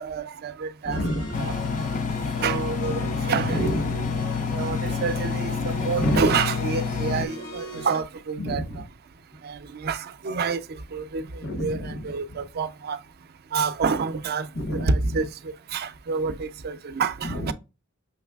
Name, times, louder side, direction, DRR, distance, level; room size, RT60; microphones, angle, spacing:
voice 1, 0.0-1.0 1.4-1.6 2.4-3.7 4.5-8.6 9.4-10.6 10.9-11.2 11.6-13.0 13.5-15.3 15.7-17.5, right 5 dB, 50° right, 0.4 m, -28 dB
voice 2, 0.8-2.2 3.5-4.3 6.0-6.3 8.4-8.8 11.4-12.0 14.6-15.2 17.2-17.5, equal, 65° left, 0.9 m, -29 dB
sound 1, 0.9-8.0, left 1 dB, 80° left, 1.9 m, -38 dB
Engine, 1.3-7.3, left 5 dB, 40° left, 0.4 m, -28 dB
5.7 x 3.2 x 2.3 m
head